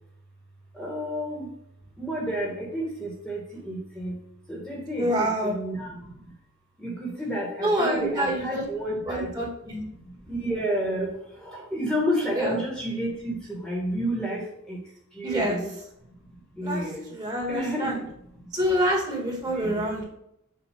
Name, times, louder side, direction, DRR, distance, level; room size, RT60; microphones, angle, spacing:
voice 1, 0.7-1.6 2.0-4.2 4.5-6.3 6.8-9.5 9.9-14.8 15.1-15.7 16.1-16.2 16.5-17.1 17.4-18.1 18.4-18.5 19.5-20.0, equal, 5° left, -4 dB, 1.4 m, -31 dB
voice 2, 5.0-5.5 7.6-8.6 9.1-9.8 12.3-12.6 15.2-15.6 16.6-16.8 17.1-17.9 18.5-20.0, right 1 dB, 20° right, -2 dB, 1.7 m, -26 dB
7.3 x 2.6 x 5.9 m, 0.75 s
head